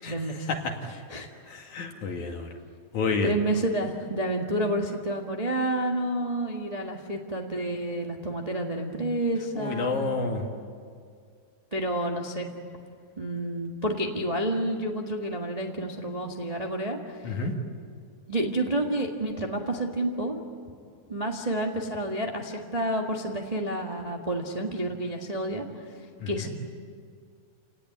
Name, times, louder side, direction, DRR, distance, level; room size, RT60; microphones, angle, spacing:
voice 1, 0.1-0.5 1.1-1.3 3.2-10.2 11.7-12.5 13.2-17.3 18.3-20.4 21.1-25.7 26.3-26.5, right 1 dB, 40° right, 1 dB, 0.5 m, -29 dB
voice 2, 1.5-2.5 2.9-3.3 9.5-10.4 17.2-17.5 26.2-26.5, left 4 dB, 60° left, 2 dB, 3.4 m, -29 dB
29.5 x 18.5 x 9.6 m, 2.2 s
omnidirectional pair, 4.1 m